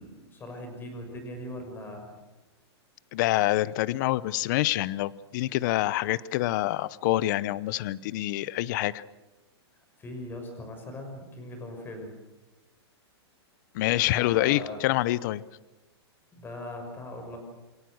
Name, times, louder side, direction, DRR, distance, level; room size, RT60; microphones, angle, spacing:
voice 1, 0.0-2.1 10.0-12.1 14.1-14.8 16.3-17.4, left 1 dB, 15° left, 5 dB, 6.1 m, -40 dB
voice 2, 3.1-9.0 13.7-15.4, left 16 dB, 45° left, 20 dB, 0.8 m, -26 dB
28.0 x 22.5 x 6.5 m, 1.1 s
hypercardioid pair, 155°, 14 cm